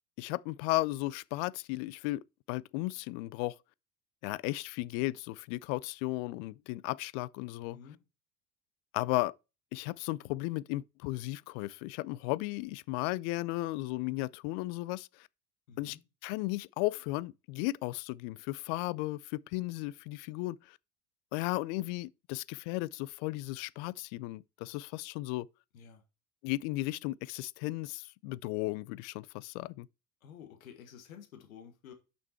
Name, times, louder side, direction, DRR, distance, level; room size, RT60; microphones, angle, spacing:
voice 1, 0.2-2.2 2.5-3.5 4.2-7.8 8.9-9.3 9.7-15.3 15.8-16.0 16.2-20.8 21.3-25.5 26.4-29.9, left 19 dB, 60° left, 0.5 m, -35 dB
voice 2, 7.7-8.0 15.7-16.0 25.7-26.0 30.2-31.9, left 8 dB, 75° left, 1.7 m, -51 dB
7.0 x 6.0 x 4.5 m
hypercardioid pair, 65°, 42 cm